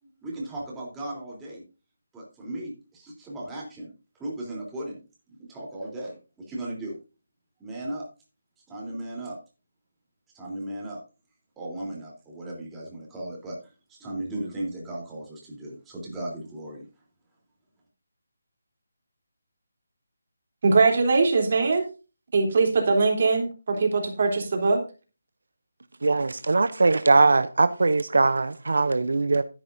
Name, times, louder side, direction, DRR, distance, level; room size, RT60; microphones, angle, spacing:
voice 1, 0.0-1.6 2.1-5.0 5.3-7.0 7.6-8.1 8.7-9.4 10.3-11.0 11.6-13.6 13.9-16.9, right 1 dB, 10° right, 3.4 m, -36 dB
voice 2, 20.6-21.8 22.3-24.8, right 4 dB, 45° right, 3.3 m, -21 dB
voice 3, 26.0-29.4, right 3 dB, 75° right, 0.7 m, -21 dB
13.5 x 9.9 x 2.7 m
figure-of-eight pair, 170°, 0 cm